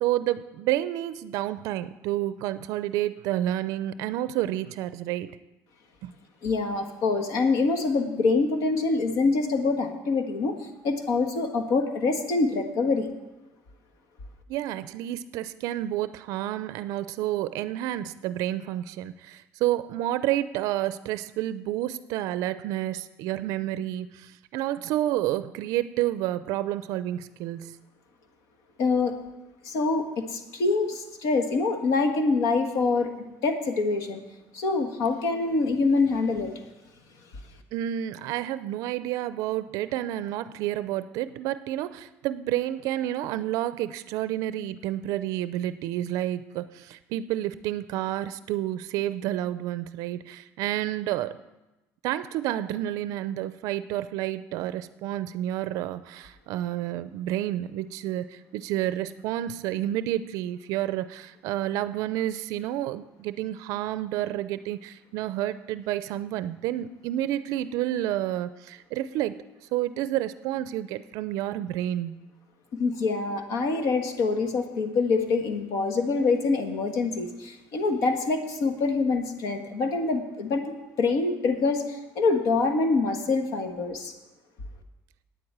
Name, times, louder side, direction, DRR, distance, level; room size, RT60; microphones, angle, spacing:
voice 1, 0.0-5.3 6.0-6.1 14.5-27.8 37.7-51.4 52.0-69.5 69.7-72.2, right 13 dB, 70° right, 14 dB, 0.4 m, -30 dB
voice 2, 6.4-10.6 10.8-13.1 28.8-29.2 29.6-33.1 33.4-34.2 34.5-36.5 72.7-84.1, left 3 dB, 65° left, 6 dB, 1.5 m, -25 dB
9.1 x 7.8 x 8.7 m, 1.0 s
cardioid pair, 150°, 6 cm